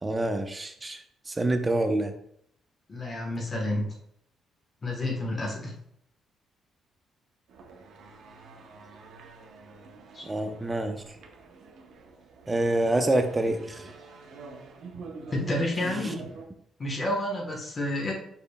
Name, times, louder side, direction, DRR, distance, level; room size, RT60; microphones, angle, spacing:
voice 1, 0.0-2.1 10.2-11.0 12.5-13.9, right 1 dB, 20° right, 6 dB, 0.6 m, -27 dB
voice 2, 2.9-3.9 4.8-5.7 10.1-10.3 15.3-16.2 16.8-18.1, left 1 dB, 35° left, 0 dB, 1.1 m, -30 dB
sound 1, 7.5-16.4, right 4 dB, 75° right, 0.8 m, -45 dB
5.4 x 4.4 x 2.2 m, 0.71 s
cardioid pair, 90°, 0 cm